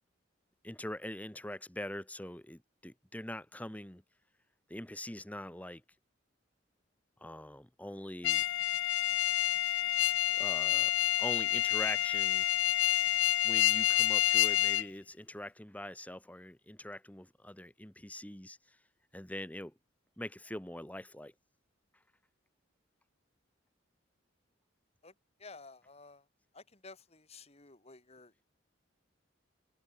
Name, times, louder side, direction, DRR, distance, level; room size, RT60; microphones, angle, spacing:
voice 1, 0.6-4.0 4.7-5.8 7.2-8.4 10.3-10.9 11.2-12.5 13.4-18.8 19.1-19.7 20.2-21.3, left 1 dB, 5° left, 1.2 m, -43 dB
sound 1, 8.2-14.9, left 15 dB, 60° left, 0.3 m, -28 dB
voice 2, 25.4-26.3 26.5-28.4, left 3 dB, 30° left, 2.1 m, -53 dB
head